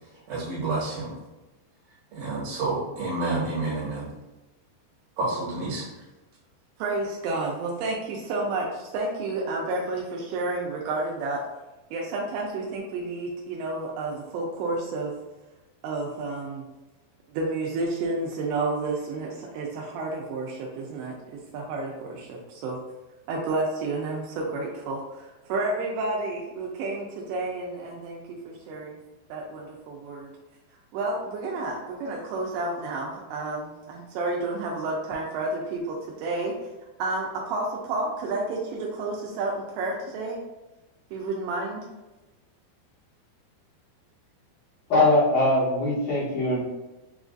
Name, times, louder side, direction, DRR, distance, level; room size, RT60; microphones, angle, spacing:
voice 1, 0.1-1.2 2.1-4.1 5.2-5.9, right 2 dB, 65° right, -7 dB, 2.8 m, -29 dB
voice 2, 6.8-11.4 11.9-15.1 15.8-16.6 17.3-22.8 23.3-29.0 29.3-30.3 30.9-36.5 37.0-40.4 41.1-41.8, right 2 dB, 85° right, -2 dB, 2.7 m, -30 dB
voice 3, 44.9-46.6, left 2 dB, 60° left, -8 dB, 2.4 m, -21 dB
7.0 x 2.5 x 2.4 m, 1.1 s
omnidirectional pair, 5.0 m